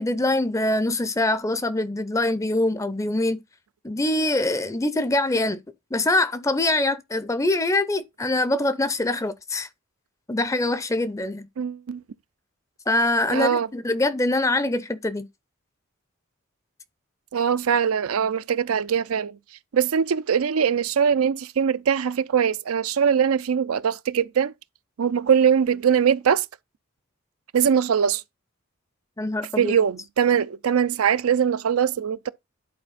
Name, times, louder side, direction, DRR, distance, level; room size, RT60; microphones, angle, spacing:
voice 1, 0.0-3.4 3.8-5.6 5.9-9.7 10.3-11.5 12.9-15.3 29.2-29.8, left 2 dB, 15° left, 0.5 m, -24 dB
voice 2, 11.6-12.0 13.3-13.7 17.3-19.4 19.7-24.5 25.0-26.5 27.5-28.2 29.6-32.3, right 7 dB, 85° right, 0.5 m, -22 dB
10.5 x 4.3 x 4.0 m
head